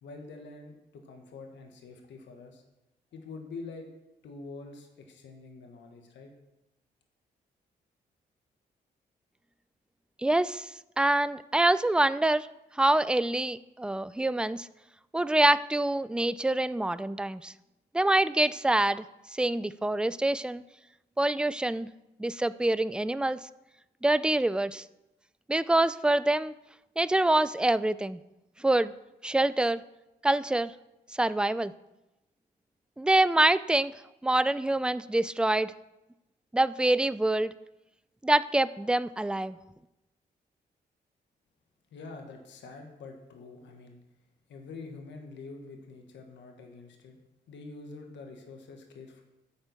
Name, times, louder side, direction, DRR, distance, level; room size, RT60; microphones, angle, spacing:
voice 1, 0.0-2.6 3.1-3.9 4.2-6.3 41.9-44.0 44.5-47.2 47.5-49.2, left 3 dB, 80° left, 4 dB, 1.3 m, -46 dB
voice 2, 10.2-10.7 11.0-12.5 12.7-14.7 15.1-17.5 17.9-19.0 19.3-20.6 21.2-21.9 22.2-23.4 24.0-24.8 25.5-26.5 27.0-28.2 28.6-28.9 29.2-29.8 30.2-30.7 31.1-31.7 33.0-33.9 34.2-35.7 36.5-37.5 38.2-39.6, right 1 dB, 5° right, 16 dB, 0.4 m, -25 dB
9.8 x 4.4 x 6.7 m, 0.94 s
supercardioid pair, 55°, 18 cm